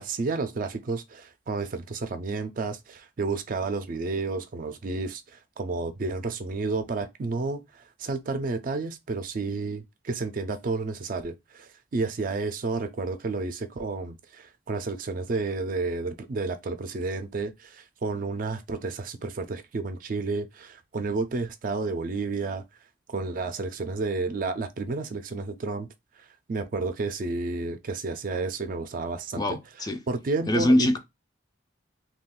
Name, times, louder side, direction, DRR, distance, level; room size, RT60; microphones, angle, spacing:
voice 1, 0.0-22.6 23.1-25.9 26.5-29.6 30.1-31.0, right 3 dB, 45° right, 0.4 m, -31 dB
voice 2, 29.3-30.0 30.5-31.0, left 1 dB, 20° left, 0.3 m, -23 dB
2.4 x 2.3 x 3.6 m
head